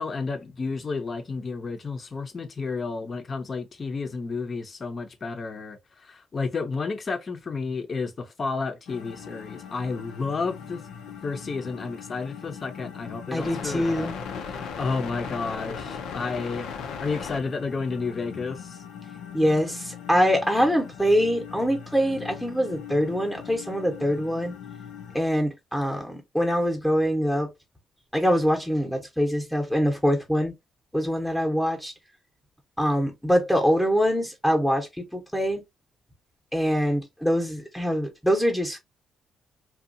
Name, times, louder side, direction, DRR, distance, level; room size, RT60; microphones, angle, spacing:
voice 1, 0.0-5.8 6.0-10.8 11.2-14.1 14.4-16.7 17.0-18.8, left 4 dB, 40° left, 0.6 m, -31 dB
sound 1, 8.9-25.2, left 7 dB, 85° left, 0.5 m, -39 dB
voice 2, 13.3-14.1 19.3-24.5 25.1-27.5 28.1-30.5 30.9-31.9 32.8-35.6 36.5-38.8, equal, ahead, 0.8 m, -24 dB
2.7 x 2.3 x 2.5 m
cardioid pair, 90°, 0 cm